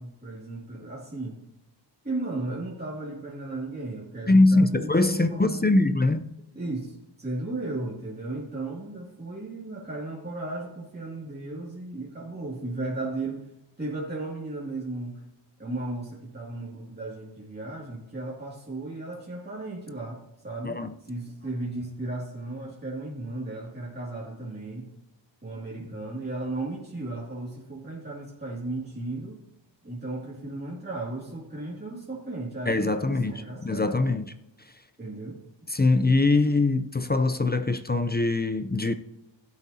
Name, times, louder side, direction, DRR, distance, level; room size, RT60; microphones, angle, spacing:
voice 1, 0.0-1.4 2.0-5.7 6.5-13.5 13.8-15.2 15.6-20.8 21.1-24.9 25.4-29.4 29.8-34.1 35.0-35.4, right 2 dB, 20° right, 2.4 m, -35 dB
voice 2, 4.3-6.2 20.6-20.9 32.7-33.3 33.6-34.2 35.7-38.9, left 2 dB, 20° left, 0.5 m, -22 dB
16.0 x 8.1 x 2.8 m
wide cardioid pair, 70°, 46 cm